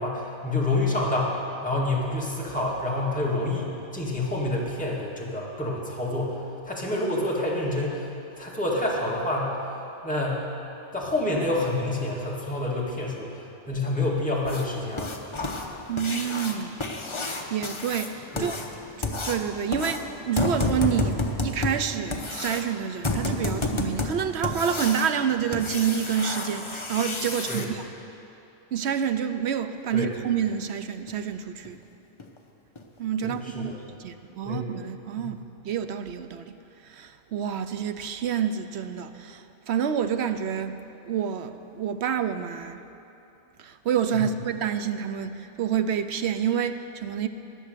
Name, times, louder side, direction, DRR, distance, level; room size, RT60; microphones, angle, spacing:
voice 1, 0.0-1.3 1.6-6.4 6.6-8.1 8.4-9.6 10.0-10.4 10.9-13.4 13.7-15.1 18.3-18.5 27.5-27.7 29.9-30.1 33.2-33.7 34.4-34.7 35.2-35.4 44.1-44.3, left 2 dB, 5° left, -5 dB, 2.0 m, -28 dB
sound 1, 14.4-27.6 30.0-30.1 30.5-30.6 31.1-31.2 31.6-31.7 32.2-32.4 32.7-32.8 33.3-33.4, left 2 dB, 25° left, 0.8 m, -31 dB
voice 2, 15.9-16.7 17.2-18.6 19.0-20.0 20.3-27.8 28.7-31.8 33.0-33.7 34.0-35.4 35.6-36.5 36.8-40.8 41.0-42.8 43.6-47.3, right 8 dB, 65° right, 10 dB, 0.8 m, -28 dB
19.5 x 7.5 x 6.7 m, 2.9 s
omnidirectional pair, 1.4 m